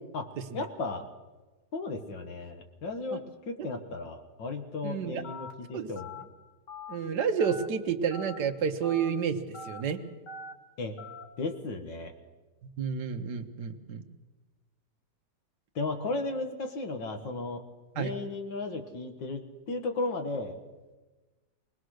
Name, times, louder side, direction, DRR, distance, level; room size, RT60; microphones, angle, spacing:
voice 1, 0.5-1.1 1.7-6.1 10.8-11.0 11.4-12.1 15.8-17.6 17.9-20.6, left 3 dB, 90° left, 5 dB, 2.2 m, -35 dB
voice 2, 4.8-5.2 5.7-5.9 6.9-10.0 12.8-14.0 18.0-18.1, right 7 dB, 70° right, 5 dB, 1.7 m, -30 dB
Telephone, 5.2-5.5 6.0-6.2 6.7-6.9 7.4-7.7 8.1-8.4 8.8-9.1 9.5-9.8 10.3-10.5 11.0-11.2, left 2 dB, 70° left, 2.6 m, -42 dB
25.0 x 19.5 x 6.5 m, 1.2 s
omnidirectional pair, 1.9 m